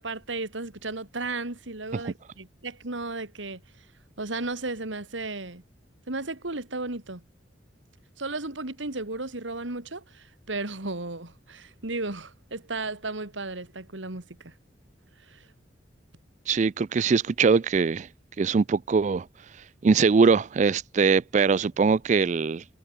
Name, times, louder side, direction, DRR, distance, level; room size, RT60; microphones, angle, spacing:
voice 1, 0.0-3.6 4.2-5.6 6.1-7.2 8.2-14.5 15.3-15.5, right 2 dB, 85° right, 2.7 m, -34 dB
voice 2, 16.5-18.1 18.4-22.6, right 5 dB, 40° right, 0.4 m, -22 dB
head